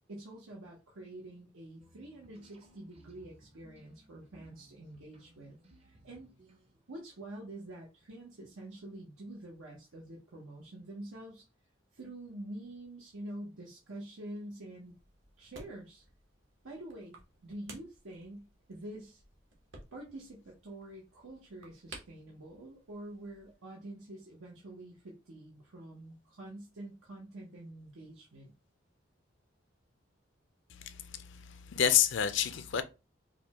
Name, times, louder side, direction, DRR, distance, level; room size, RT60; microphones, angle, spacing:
voice 1, 0.1-6.3 6.9-11.4 11.9-14.9 15.4-16.0 16.6-17.2 17.4-19.2 19.9-28.5, right 1 dB, 90° right, 0.9 m, -47 dB
sound 1, 1.8-7.0, right 1 dB, 30° right, 0.6 m, -61 dB
sound 2, 14.8-23.6, right 3 dB, 70° right, 1.2 m, -56 dB
voice 2, 30.7-32.8, left 9 dB, 65° left, 0.4 m, -29 dB
5.0 x 2.2 x 2.8 m
head